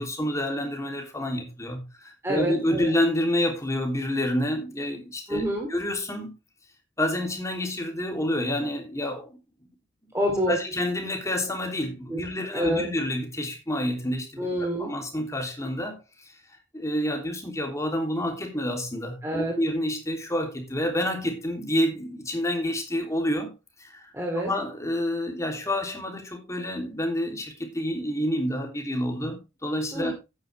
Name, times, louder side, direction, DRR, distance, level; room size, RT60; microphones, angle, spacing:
voice 1, 0.0-5.4 5.7-6.3 7.0-9.4 10.5-16.3 16.7-23.5 23.8-24.1 24.4-30.1, left 1 dB, 15° left, 3.3 m, -28 dB
voice 2, 2.2-2.9 5.3-5.7 10.1-10.6 12.1-12.2 12.5-12.8 14.4-14.9 19.2-19.5 24.1-24.5 29.9-30.1, equal, 15° right, 3.3 m, -27 dB
12.5 x 9.7 x 3.5 m
head